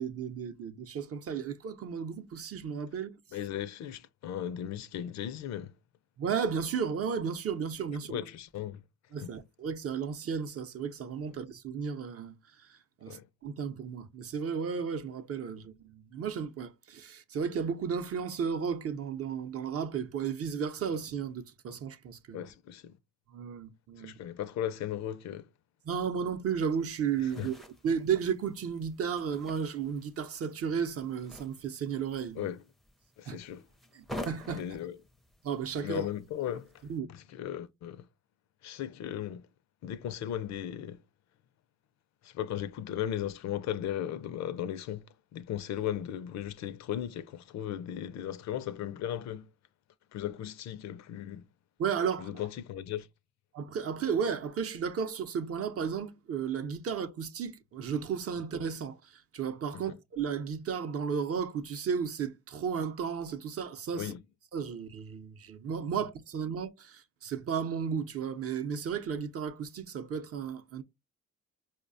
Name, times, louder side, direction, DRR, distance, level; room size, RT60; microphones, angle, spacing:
voice 1, 0.0-3.1 6.2-8.2 9.1-12.4 12.7-22.5 23.3-24.2 25.8-27.5 27.8-32.5 33.3-33.4 33.9-34.6 35.4-36.1 36.9-37.1 51.8-52.3 53.5-64.1 64.5-70.8, right 7 dB, 50° right, 0.6 m, -34 dB
voice 2, 3.3-5.7 8.1-8.8 9.2-9.3 13.1-13.3 22.3-23.0 24.0-25.5 27.4-27.5 32.4-32.6 33.2-33.7 34.5-35.0 35.8-36.7 37.1-38.1 38.6-39.5 39.8-41.0 42.2-45.1 45.3-49.5 50.1-51.5 52.2-53.1 59.7-60.0 63.9-64.2, left 10 dB, 65° left, 0.4 m, -36 dB
sound 1, 26.6-37.0, left 1 dB, ahead, 0.4 m, -49 dB
4.7 x 2.1 x 2.5 m
cardioid pair, 90°, 30 cm